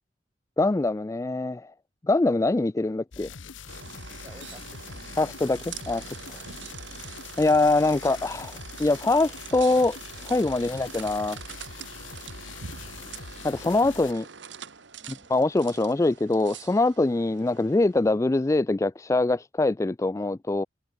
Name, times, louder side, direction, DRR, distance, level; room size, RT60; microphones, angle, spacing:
voice 1, 0.6-1.7 2.0-3.3 5.2-6.1 7.4-11.4 13.4-14.2 15.3-20.6, left 2 dB, 15° left, 0.3 m, -24 dB
sound 1, 3.1-14.1, left 5 dB, 80° left, 1.0 m, -43 dB
sound 2, 3.7-18.1, right 7 dB, 70° right, 1.4 m, -44 dB
voice 2, 4.2-5.2 6.5-6.8 13.3-14.3 15.0-15.3, right 1 dB, 15° right, 5.9 m, -52 dB
head